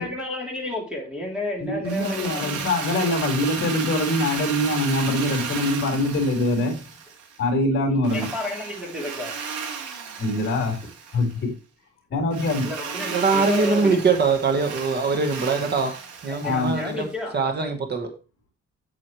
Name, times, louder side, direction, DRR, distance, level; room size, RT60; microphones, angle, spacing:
voice 1, 0.0-2.5 7.9-9.3 12.6-14.0 16.2-17.4, left 2 dB, 5° right, 3.0 m, -31 dB
voice 2, 1.6-6.9 7.4-8.3 10.2-10.8 11.1-11.5 12.1-12.7 16.4-16.8, left 1 dB, 40° left, 4.0 m, -23 dB
Drill, 1.8-7.4 8.0-11.3 12.3-17.1, right 6 dB, 85° right, 2.5 m, -34 dB
voice 3, 13.1-15.9 16.2-17.0 17.3-18.1, right 4 dB, 35° right, 1.3 m, -22 dB
9.0 x 8.4 x 3.2 m
cardioid pair, 165°, 30 cm